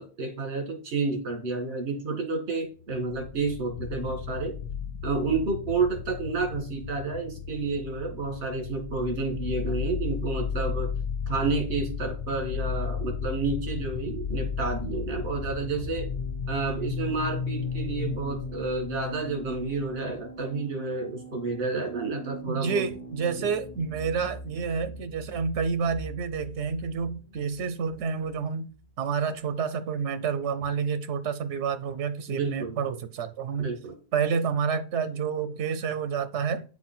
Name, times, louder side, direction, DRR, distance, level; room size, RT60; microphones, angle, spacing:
voice 1, 0.0-4.5 5.0-10.9 11.3-16.1 16.5-22.8 23.4-23.5 32.3-32.8 33.6-33.9, right 3 dB, 70° right, 2 dB, 2.0 m, -30 dB
sound 1, 2.8-20.2, left 7 dB, 85° left, 1.0 m, -35 dB
sound 2, 13.9-29.4, left 2 dB, 35° left, 1.0 m, -39 dB
voice 2, 22.5-28.7 29.0-33.7 34.1-36.6, right 6 dB, 85° right, 12 dB, 1.0 m, -29 dB
8.4 x 4.2 x 4.3 m, 0.36 s
omnidirectional pair, 1.1 m